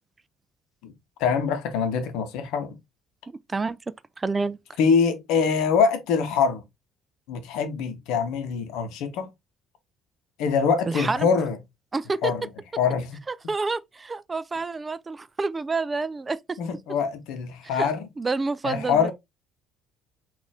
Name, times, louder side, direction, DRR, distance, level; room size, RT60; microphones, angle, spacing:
voice 1, 1.2-2.8 4.8-6.6 7.3-9.3 10.4-11.6 12.2-12.5 12.8-13.2 16.6-18.1 18.6-19.1, left 6 dB, 70° left, 0.8 m, -24 dB
voice 2, 4.2-4.6 10.9-11.3 11.9-12.3 13.3-16.6 17.7-19.1, right 3 dB, 25° right, 0.3 m, -28 dB
4.0 x 2.5 x 3.5 m
hypercardioid pair, 55°, 0 cm